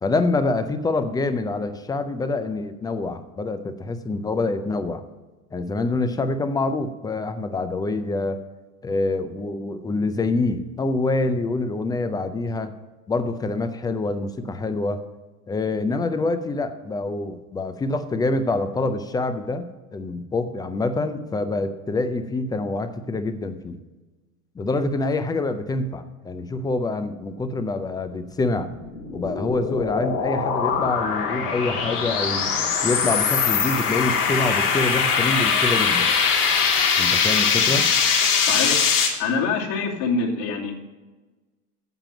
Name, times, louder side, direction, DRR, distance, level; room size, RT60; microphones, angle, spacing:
voice 1, 0.0-5.0 5.5-8.4 8.8-12.7 13.1-15.0 15.5-19.6 19.9-23.8 24.6-28.7 29.1-32.5 32.8-36.1 37.0-37.9, left 2 dB, 10° left, 10 dB, 0.4 m, -26 dB
sound 1, 28.7-39.1, left 6 dB, 75° left, 3.0 m, -22 dB
voice 2, 38.5-38.8 39.2-40.8, left 4 dB, 60° left, -3 dB, 2.9 m, -25 dB
9.1 x 7.5 x 5.9 m, 1.2 s
supercardioid pair, 115°, 46 cm